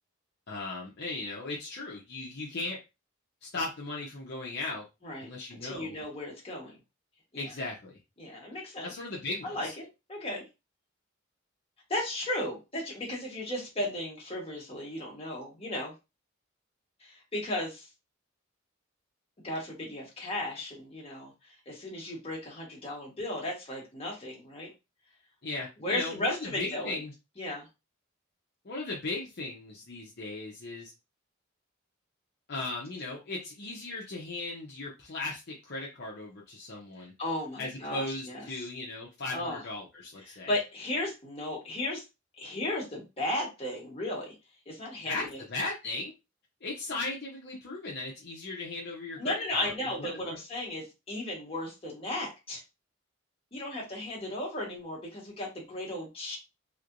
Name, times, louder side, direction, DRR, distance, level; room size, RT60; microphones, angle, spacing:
voice 1, 0.5-2.8 3.4-4.9 5.2-6.0 7.3-8.0 8.8-9.7 25.4-27.1 28.6-30.9 32.5-37.1 37.6-40.5 45.0-46.1 46.6-50.4, left 2 dB, 55° left, -3 dB, 0.8 m, -37 dB
voice 2, 5.0-6.8 7.3-7.5 8.2-8.9 9.4-10.4 11.9-15.9 17.0-17.9 19.4-21.3 21.7-24.7 25.8-27.0 27.4-27.7 37.2-38.5 39.3-39.6 40.2-42.0 42.4-44.3 44.7-45.4 49.2-52.6 53.5-56.4, left 1 dB, 30° left, -3 dB, 1.4 m, -35 dB
3.2 x 2.9 x 2.6 m, 0.26 s
head